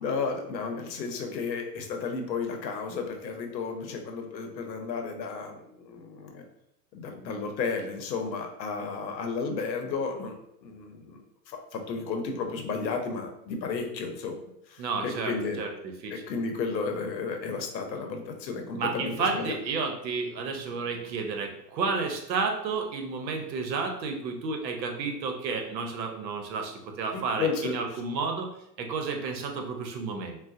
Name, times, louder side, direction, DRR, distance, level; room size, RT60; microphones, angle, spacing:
voice 1, 0.0-6.5 6.9-11.2 11.5-14.4 14.7-15.6 16.1-19.5 27.1-27.7, left 4 dB, 90° left, 4 dB, 0.8 m, -33 dB
voice 2, 14.8-16.2 18.7-30.4, right 4 dB, 80° right, 3 dB, 0.9 m, -31 dB
3.9 x 2.1 x 2.6 m, 0.77 s
hypercardioid pair, 125°, 50 cm